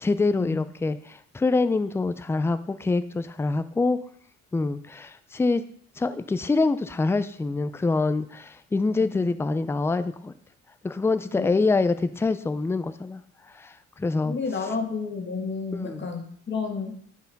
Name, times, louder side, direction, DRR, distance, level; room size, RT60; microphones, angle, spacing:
voice 1, 0.0-4.0 4.5-5.6 6.0-10.3 10.8-13.2 13.5-14.4 15.7-16.0, left 3 dB, 10° left, 12 dB, 0.3 m, -25 dB
voice 2, 14.2-17.0, left 4 dB, 40° left, 2 dB, 1.7 m, -31 dB
9.3 x 4.6 x 3.5 m, 0.62 s
cardioid pair, 90°, 30 cm